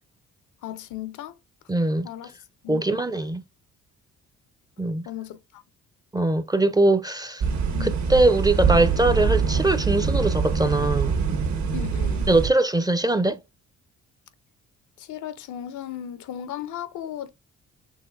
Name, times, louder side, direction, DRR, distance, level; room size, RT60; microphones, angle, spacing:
voice 1, 0.6-1.4 2.0-2.3 2.6-2.8 5.0-5.6 7.7-8.0 11.7-12.3 15.0-17.3, left 11 dB, 75° left, 0.6 m, -36 dB
voice 2, 1.7-2.1 2.7-3.4 4.8-5.0 6.1-7.4 7.8-11.2 12.3-13.4, right 2 dB, 15° right, 0.4 m, -21 dB
sound 1, 7.4-12.5, right 5 dB, 65° right, 1.3 m, -24 dB
6.4 x 3.1 x 2.3 m
cardioid pair, 90°, 30 cm